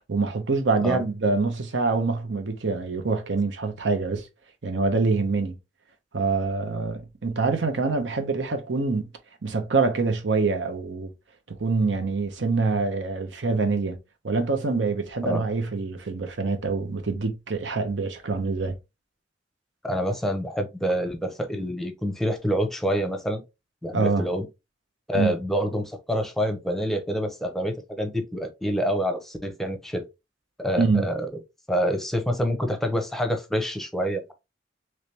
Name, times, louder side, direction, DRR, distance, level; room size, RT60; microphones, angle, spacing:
voice 1, 0.1-4.3 4.6-5.6 6.1-9.1 9.4-11.1 11.5-14.0 14.2-18.8 23.9-24.3 25.1-25.3 30.7-31.1, right 4 dB, 80° right, 0.8 m, -25 dB
voice 2, 19.8-23.4 23.8-24.5 25.1-30.0 30.6-31.3 31.7-34.3, equal, ahead, 0.7 m, -27 dB
3.3 x 3.1 x 2.8 m
head